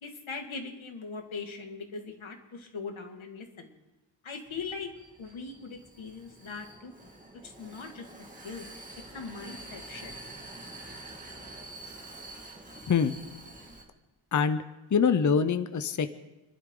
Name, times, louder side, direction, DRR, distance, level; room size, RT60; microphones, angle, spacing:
voice 1, 0.0-3.7 4.2-4.9 5.2-6.9 7.4-8.1 8.4-8.7 9.1-10.1, left 4 dB, 75° left, 4 dB, 2.2 m, -40 dB
Vehicle, 4.5-13.8, right 2 dB, 15° right, 2.3 m, -47 dB
voice 2, 14.3-14.6 14.9-16.1, left 6 dB, 40° left, 11 dB, 0.7 m, -24 dB
29.0 x 12.0 x 3.8 m, 1.0 s
wide cardioid pair, 155°, 48 cm